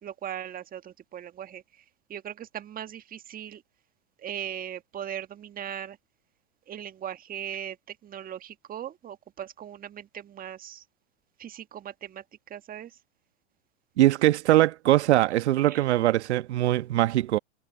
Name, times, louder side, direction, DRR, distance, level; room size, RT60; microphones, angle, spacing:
voice 1, 0.0-1.8 2.1-3.6 4.2-6.0 6.7-10.8 11.4-13.0 15.7-15.8, right 10 dB, 25° right, 1.6 m, -39 dB
voice 2, 14.0-17.4, right 15 dB, 65° right, 1.4 m, -22 dB
hypercardioid pair, 100°, 36 cm